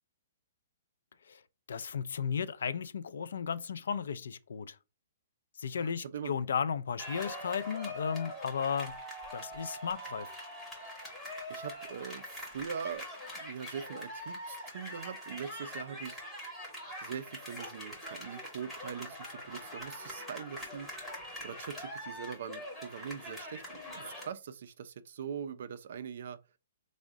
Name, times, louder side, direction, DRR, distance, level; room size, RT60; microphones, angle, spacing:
voice 1, 1.7-4.8 5.6-8.9 9.3-10.3, left 6 dB, 75° left, 0.3 m, -35 dB
voice 2, 5.7-6.4 11.5-13.1 13.3-16.2 17.0-20.9 21.4-26.4, right 7 dB, 50° right, 0.3 m, -42 dB
sound 1, 7.0-24.3, left 1 dB, 5° left, 0.8 m, -43 dB
3.6 x 2.1 x 3.4 m
hypercardioid pair, 175°, 0 cm